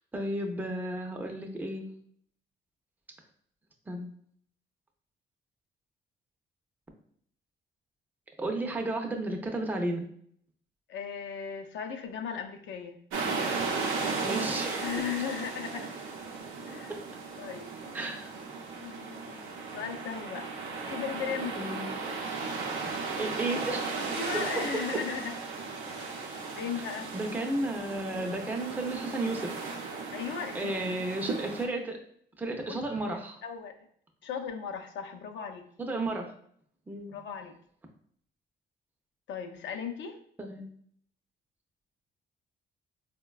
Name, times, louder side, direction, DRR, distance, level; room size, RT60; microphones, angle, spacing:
voice 1, 0.1-1.9 3.9-4.1 8.4-10.1 14.2-14.9 16.7-17.0 17.9-18.3 21.6-21.9 23.2-24.0 26.8-26.9 27.1-30.0 30.5-32.0 32.4-33.4 35.8-36.3 36.9-37.1 40.4-40.7, right 1 dB, 10° right, 2 dB, 0.4 m, -33 dB
voice 2, 10.9-13.0 14.8-15.9 16.7-16.9 17.4-17.8 18.8-20.5 20.9-21.6 24.1-25.3 26.6-27.1 30.1-30.8 32.6-32.8 33.1-33.2 33.4-33.8 34.2-35.7 37.1-37.5 39.3-40.2, left 7 dB, 70° left, 5 dB, 0.5 m, -37 dB
sound 1, 13.1-31.7, right 4 dB, 90° right, 0.6 m, -36 dB
3.9 x 2.1 x 2.3 m, 0.64 s
cardioid pair, 90°, 20 cm